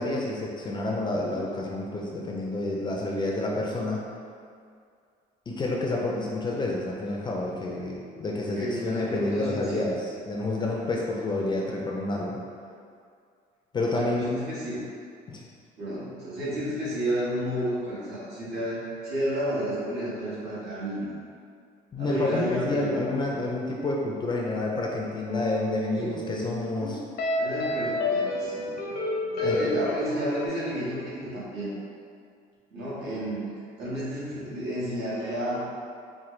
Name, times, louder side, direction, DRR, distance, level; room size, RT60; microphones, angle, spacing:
voice 1, 0.0-4.0 5.5-12.4 13.7-14.3 15.3-15.4 21.9-27.0 29.4-29.8, left 2 dB, 25° left, -2 dB, 0.4 m, -29 dB
voice 2, 8.5-9.8 13.9-14.9 15.8-21.1 22.0-23.0 25.9-26.2 27.3-28.8 29.2-31.7 32.7-35.6, equal, 85° right, -9 dB, 1.4 m, -31 dB
sound 1, 25.3-30.5, left 1 dB, 80° left, 0.7 m, -30 dB
4.3 x 2.2 x 3.0 m, 2.3 s
cardioid pair, 110°, 17 cm